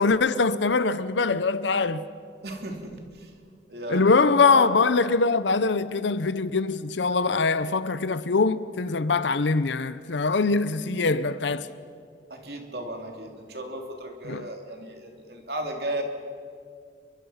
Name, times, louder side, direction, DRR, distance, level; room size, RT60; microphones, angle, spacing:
voice 1, 0.0-2.0 3.9-11.7 14.3-14.5, left 4 dB, 80° left, 0.7 m, -23 dB
voice 2, 2.4-3.3 3.7-4.7 12.3-16.0, right 1 dB, 60° right, 3.0 m, -35 dB
28.0 x 23.5 x 5.8 m
head